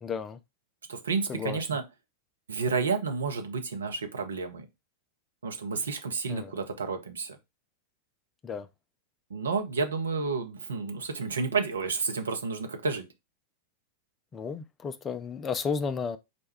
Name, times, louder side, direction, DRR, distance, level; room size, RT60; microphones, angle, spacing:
voice 1, 0.0-0.4 1.3-1.6 6.3-6.5 8.4-8.7 14.3-16.2, left 5 dB, 20° left, 0.4 m, -33 dB
voice 2, 0.9-1.8 2.5-4.7 5.4-7.4 9.3-13.1, right 4 dB, 70° right, 0.7 m, -30 dB
4.2 x 2.2 x 4.6 m
figure-of-eight pair, 90°, 0 cm